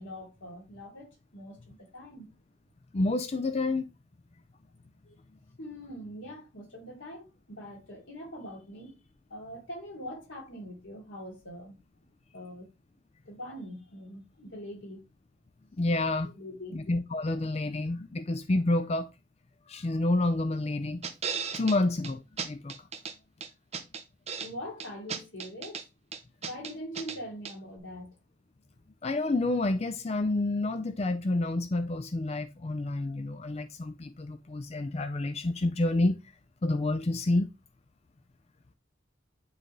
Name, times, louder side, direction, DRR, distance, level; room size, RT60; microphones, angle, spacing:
voice 1, 0.0-2.3 5.0-5.2 5.6-9.0 9.3-11.7 12.3-12.7 13.3-15.0 16.2-16.8 24.4-25.8 26.4-28.1, equal, 85° left, 3.0 m, -43 dB
voice 2, 2.9-3.8 15.8-16.3 16.7-19.1 19.7-21.0 21.5-22.7 29.0-36.1 36.6-37.5, left 2 dB, 35° left, 0.4 m, -29 dB
sound 1, 21.0-21.8 22.0-22.1 22.4-23.1 23.4-24.5 24.8-25.8 26.1-27.2 27.4-27.5, right 6 dB, 35° right, 0.8 m, -35 dB
9.9 x 4.0 x 3.1 m
head